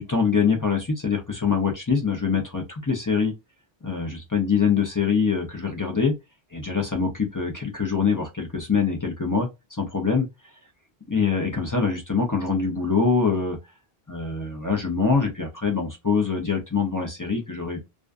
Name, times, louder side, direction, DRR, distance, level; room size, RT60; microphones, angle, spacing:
voice 1, 0.0-3.3 3.8-6.2 6.5-9.5 9.8-10.3 11.1-13.6 14.1-17.8, left 5 dB, 30° left, 0.3 m, -24 dB
2.4 x 2.3 x 2.3 m
omnidirectional pair, 1.1 m